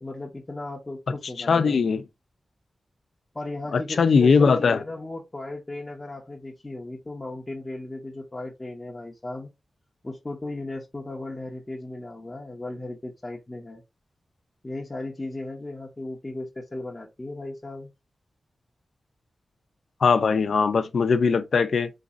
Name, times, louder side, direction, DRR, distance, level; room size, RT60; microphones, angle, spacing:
voice 1, 0.0-1.8 3.3-9.5 10.0-13.8 14.6-17.9, left 2 dB, 20° left, 0.7 m, -36 dB
voice 2, 1.5-2.0 3.7-4.8 20.0-21.9, left 5 dB, 70° left, 0.5 m, -20 dB
4.0 x 2.6 x 3.6 m
wide cardioid pair, 160°, 0 cm